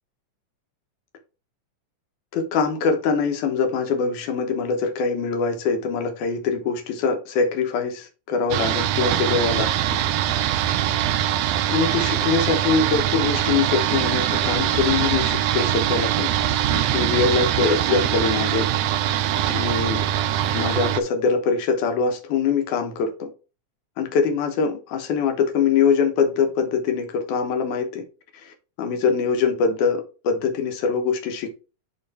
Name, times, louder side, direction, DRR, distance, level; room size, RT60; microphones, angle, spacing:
voice 1, 2.3-10.0 11.7-16.3 16.7-19.2 19.5-20.1 20.5-23.3 24.0-28.0 28.3-31.5, left 5 dB, 75° left, 2.6 m, -23 dB
sound 1, 8.5-21.0, right 11 dB, 80° right, 1.6 m, -22 dB
8.7 x 3.2 x 4.1 m
omnidirectional pair, 3.6 m